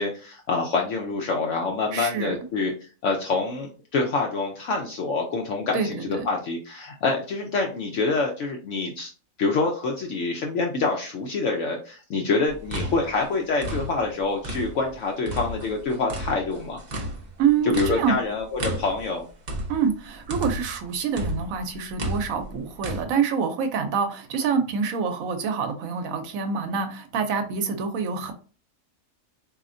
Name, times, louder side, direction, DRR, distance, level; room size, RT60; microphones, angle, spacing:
voice 1, 0.0-2.7 3.0-9.1 9.4-16.8 17.6-19.3, left 3 dB, 70° left, 1 dB, 0.9 m, -26 dB
voice 2, 1.9-2.4 5.7-6.3 17.4-18.2 19.7-28.3, right 6 dB, 80° right, 7 dB, 1.0 m, -26 dB
sound 1, 12.5-14.9 15.3-20.8 21.2-23.0, equal, 40° right, 0.7 m, -33 dB
4.2 x 2.7 x 2.5 m, 0.37 s
omnidirectional pair, 1.4 m